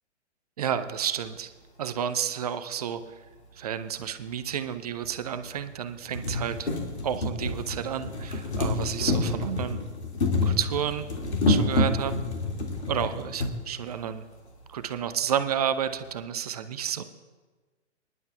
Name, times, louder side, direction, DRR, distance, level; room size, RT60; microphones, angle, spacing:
voice 1, 0.6-1.5 1.8-3.2 3.5-6.7 7.0-9.8 10.4-11.1 11.5-12.1 12.9-14.2 14.7-17.0, right 9 dB, 35° right, 11 dB, 0.5 m, -31 dB
sound 1, 4.0-4.1 5.0-5.1 5.6-5.7 6.0-13.5 14.5-14.6 14.8-14.9, left 2 dB, 65° left, 2.3 m, -28 dB
25.0 x 11.0 x 2.3 m, 1.3 s
figure-of-eight pair, 115°, 35 cm